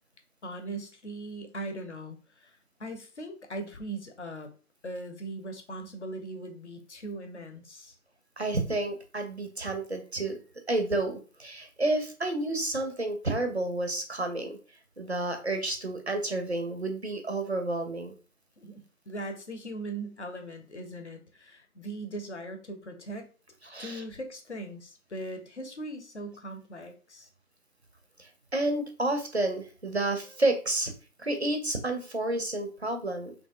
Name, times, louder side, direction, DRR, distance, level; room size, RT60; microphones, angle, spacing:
voice 1, 0.4-4.5 4.8-8.0 18.6-23.3 23.8-27.3, right 1 dB, 50° left, 5 dB, 0.5 m, -40 dB
voice 2, 8.4-10.4 10.7-14.6 15.0-18.1 23.6-24.0 28.2-30.9 31.2-33.3, right 2 dB, 50° right, 5 dB, 0.4 m, -30 dB
3.0 x 2.6 x 2.2 m, 0.35 s
figure-of-eight pair, 165°, 44 cm